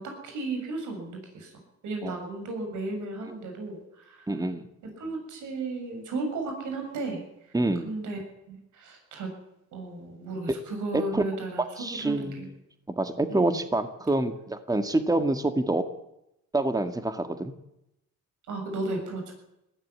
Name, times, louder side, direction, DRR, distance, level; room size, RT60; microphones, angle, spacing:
voice 1, 0.0-1.5 1.8-4.4 4.8-7.6 7.8-9.3 9.7-12.5 13.3-13.6 18.5-19.3, right 2 dB, 80° right, 3 dB, 7.1 m, -35 dB
voice 2, 4.3-4.6 7.5-7.9 10.9-11.2 11.8-12.5 13.0-15.9 16.5-17.5, right 2 dB, 10° right, 8 dB, 1.9 m, -27 dB
20.0 x 15.0 x 9.8 m, 0.85 s
cardioid pair, 90°, 30 cm